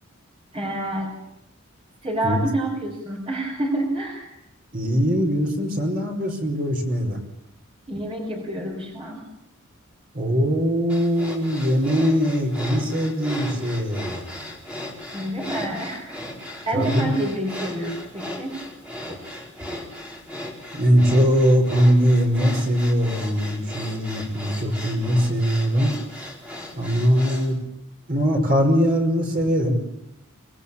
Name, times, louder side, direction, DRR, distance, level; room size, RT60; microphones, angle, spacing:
voice 1, 0.5-1.2 2.0-4.3 7.9-9.3 14.3-14.4 15.1-16.2 16.7-18.6 19.1-19.2, right 1 dB, 25° right, 1 dB, 4.1 m, -28 dB
voice 2, 4.7-7.2 10.1-14.2 16.7-17.1 20.7-26.0 26.7-27.6 28.1-29.8, equal, 45° right, 2 dB, 5.3 m, -21 dB
sound 1, 10.9-27.5, left 1 dB, 5° right, 4.4 m, -36 dB
25.0 x 19.5 x 8.7 m, 0.82 s
head